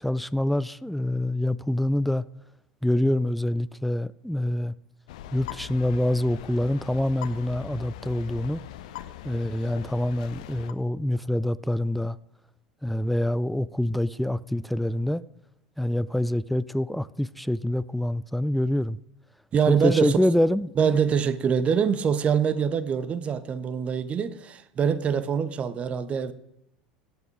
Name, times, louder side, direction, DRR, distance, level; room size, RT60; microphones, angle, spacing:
voice 1, 0.0-2.2 2.8-4.7 5.3-8.6 9.2-12.2 12.8-15.2 15.8-19.0 19.7-20.7, left 1 dB, ahead, 0.3 m, -26 dB
sound 1, 5.1-10.7, left 12 dB, 60° left, 0.7 m, -41 dB
voice 2, 19.5-20.2 20.8-26.3, right 7 dB, 30° right, 0.8 m, -24 dB
16.5 x 6.0 x 5.1 m
figure-of-eight pair, 80°, 4 cm